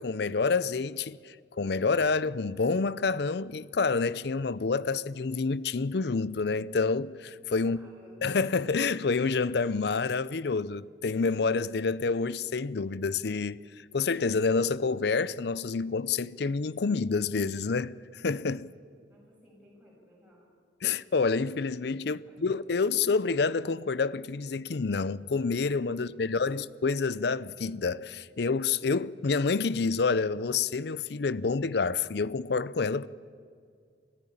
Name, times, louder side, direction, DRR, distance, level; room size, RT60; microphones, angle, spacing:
voice 1, 0.0-7.8 8.2-18.7 20.8-33.1, left 4 dB, 60° left, 0.5 m, -28 dB
voice 2, 7.6-8.3 19.1-20.5 22.0-22.9 25.9-26.4 26.6-26.7, equal, 5° right, 7.4 m, -58 dB
23.5 x 14.5 x 8.7 m
head